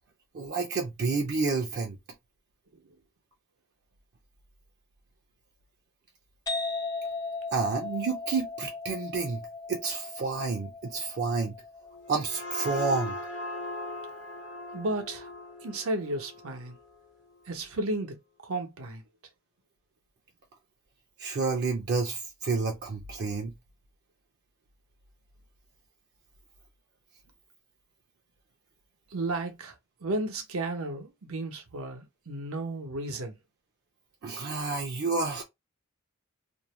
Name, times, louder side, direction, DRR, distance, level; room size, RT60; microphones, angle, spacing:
voice 1, 0.3-2.0 7.5-11.6 12.1-13.1 21.2-23.5 34.2-35.4, right 4 dB, 50° right, 0.5 m, -30 dB
sound 1, 6.5-13.9, left 3 dB, 20° left, 0.3 m, -38 dB
sound 2, 11.9-17.4, left 2 dB, 55° left, 0.6 m, -39 dB
voice 2, 14.7-15.3 15.6-16.8 17.5-18.2 18.4-19.0 29.1-29.7 30.0-33.4, right 2 dB, 85° right, 0.7 m, -33 dB
2.6 x 2.0 x 3.0 m
head